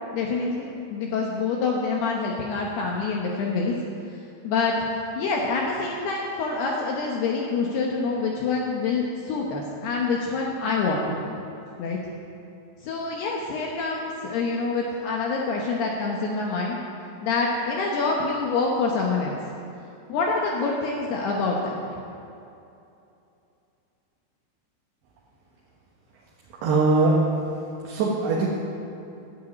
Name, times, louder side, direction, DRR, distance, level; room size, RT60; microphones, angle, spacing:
voice 1, 0.1-3.7 4.4-11.2 11.8-12.0 12.8-16.8 17.2-19.4 20.1-22.0, left 4 dB, 70° left, -1 dB, 2.6 m, -26 dB
voice 2, 26.6-27.2 27.9-28.5, right 3 dB, 65° right, -4 dB, 3.0 m, -21 dB
12.5 x 8.3 x 9.2 m, 2.7 s
omnidirectional pair, 5.7 m